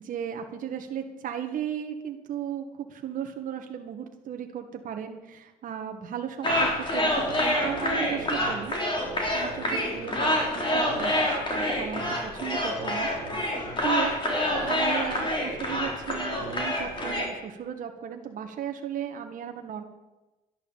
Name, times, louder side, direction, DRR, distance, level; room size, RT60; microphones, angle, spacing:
voice 1, 0.0-7.1 7.4-8.7 9.3-13.6 13.8-14.2 14.6-19.8, right 9 dB, 50° right, 4 dB, 1.4 m, -35 dB
sound 1, 6.4-17.3, left 1 dB, 30° left, 3.8 m, -27 dB
11.5 x 10.5 x 7.0 m, 1.1 s
cardioid pair, 110°, 17 cm